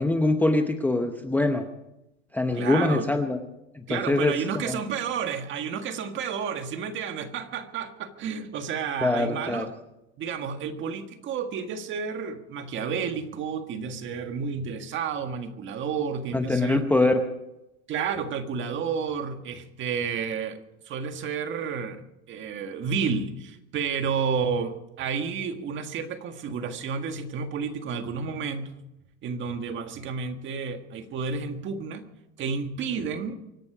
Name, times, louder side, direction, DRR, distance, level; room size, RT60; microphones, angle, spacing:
voice 1, 0.0-1.6 2.3-3.4 3.7-4.8 9.0-9.7 16.3-17.2, left 2 dB, 5° left, 6 dB, 0.8 m, -24 dB
voice 2, 2.5-3.1 3.9-9.7 10.2-16.8 17.9-20.6 20.8-28.7 29.2-32.1 32.4-33.4, right 6 dB, 35° right, 7 dB, 1.7 m, -31 dB
24.5 x 11.5 x 5.0 m, 0.90 s
supercardioid pair, 140°, 35 cm